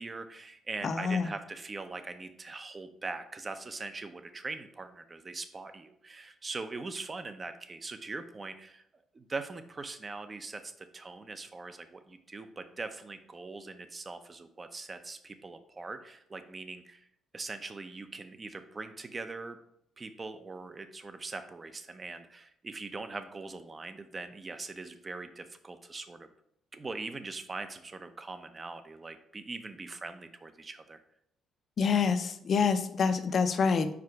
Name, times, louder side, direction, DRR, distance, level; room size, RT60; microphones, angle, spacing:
voice 1, 0.0-8.8 9.1-17.1 17.3-19.6 20.0-26.3 26.7-31.0, right 3 dB, 30° right, 9 dB, 0.7 m, -41 dB
voice 2, 0.8-1.3 31.8-33.9, left 5 dB, 50° left, 10 dB, 0.6 m, -27 dB
4.8 x 4.8 x 4.7 m, 0.74 s
cardioid pair, 80°, 0 cm